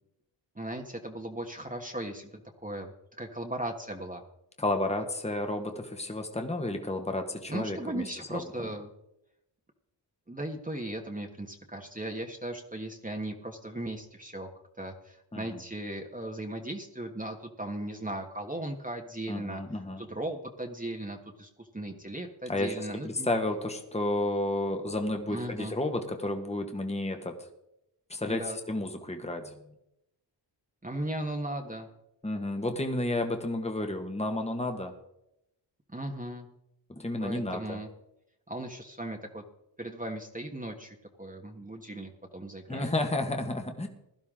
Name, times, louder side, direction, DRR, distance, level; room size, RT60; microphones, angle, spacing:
voice 1, 0.5-4.2 7.5-8.9 10.3-14.5 14.8-23.3 25.3-25.7 28.2-28.6 30.8-31.9 35.9-36.5 37.2-37.9 38.5-39.4 39.8-42.9, right 1 dB, 20° right, 2 dB, 1.5 m, -37 dB
voice 2, 4.6-8.0 8.3-8.7 15.3-15.6 19.3-20.0 22.5-27.3 28.1-28.4 28.7-29.5 32.2-34.9 36.9-37.8 42.7-43.9, left 1 dB, 15° left, 5 dB, 1.6 m, -31 dB
16.5 x 11.0 x 3.8 m, 0.82 s
cardioid pair, 45°, 44 cm